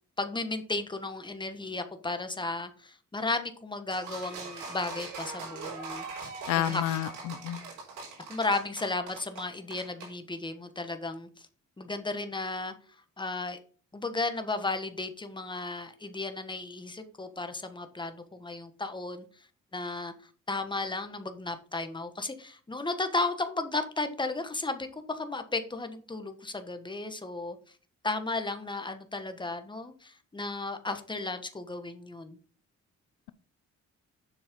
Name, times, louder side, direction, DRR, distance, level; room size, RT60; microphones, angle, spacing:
voice 1, 0.2-6.0 6.6-6.8 8.3-11.5 11.8-12.7 13.2-13.6 13.9-19.3 19.7-20.1 20.5-27.6 28.0-32.4, left 3 dB, 15° left, 8 dB, 1.5 m, -34 dB
sound 1, 3.9-10.1, right 4 dB, 85° right, 3.9 m, -41 dB
voice 2, 6.5-7.6, left 12 dB, 85° left, 15 dB, 0.6 m, -30 dB
7.6 x 6.1 x 5.3 m, 0.40 s
cardioid pair, 90°, 30 cm